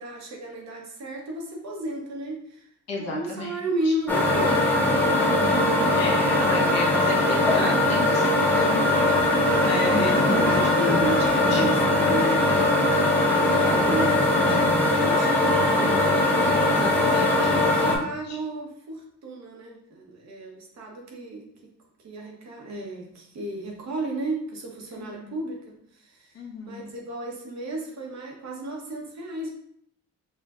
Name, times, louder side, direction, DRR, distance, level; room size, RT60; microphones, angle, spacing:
voice 1, 0.0-2.7 3.0-5.7 7.0-7.3 9.9-15.7 17.5-21.5 22.0-26.3 26.7-29.5, right 1 dB, 60° right, 0 dB, 1.0 m, -33 dB
voice 2, 2.9-3.5 3.8-3.9 6.0-10.9 11.5-11.6 16.1-18.0 18.2-18.4 24.9-25.3 26.3-26.9, left 2 dB, 55° left, -2 dB, 1.3 m, -34 dB
sound 1, 4.1-18.0, left 1 dB, 5° left, 0.8 m, -21 dB
4.7 x 2.4 x 2.5 m, 0.68 s
cardioid pair, 90°, 30 cm